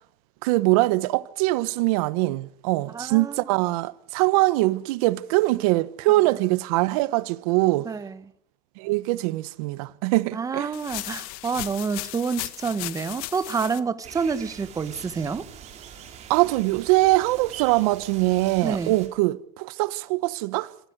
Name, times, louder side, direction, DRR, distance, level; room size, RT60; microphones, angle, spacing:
voice 1, 0.4-7.9 8.8-10.7 16.3-20.7, right 20 dB, 75° right, 1.2 m, -23 dB
voice 2, 2.9-3.5 7.8-8.2 10.3-15.5 18.6-18.9, right 5 dB, 20° right, 1.2 m, -28 dB
sound 1, 10.7-13.8, left 18 dB, 75° left, 1.5 m, -35 dB
sound 2, 14.0-19.1, right 9 dB, 35° right, 4.6 m, -43 dB
26.0 x 14.5 x 8.1 m
supercardioid pair, 135°, 19 cm